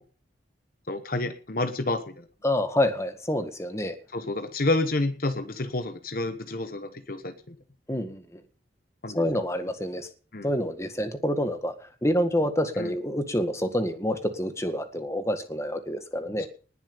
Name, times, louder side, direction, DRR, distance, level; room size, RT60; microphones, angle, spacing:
voice 1, 0.9-2.3 4.1-7.5 9.0-9.2 10.3-10.5 12.8-12.9 16.4-16.5, left 2 dB, 50° left, 9 dB, 1.1 m, -29 dB
voice 2, 2.4-3.9 7.9-8.4 9.1-10.1 10.4-11.7 12.0-16.5, left 1 dB, 15° left, 8 dB, 1.7 m, -27 dB
19.5 x 7.2 x 7.0 m, 0.39 s
head